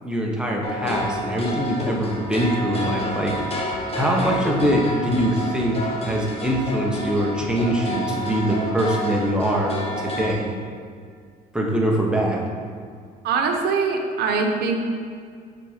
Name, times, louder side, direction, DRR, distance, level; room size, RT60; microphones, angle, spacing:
voice 1, 0.0-3.3 3.6-5.8 6.0-10.5 11.5-12.4, equal, 5° right, -2 dB, 1.1 m, -23 dB
sound 1, 0.6-10.3, left 1 dB, 35° left, 1.1 m, -29 dB
voice 2, 13.2-14.8, right 4 dB, 70° right, 3 dB, 0.9 m, -22 dB
6.7 x 4.2 x 5.0 m, 2.1 s
cardioid pair, 110°, 17 cm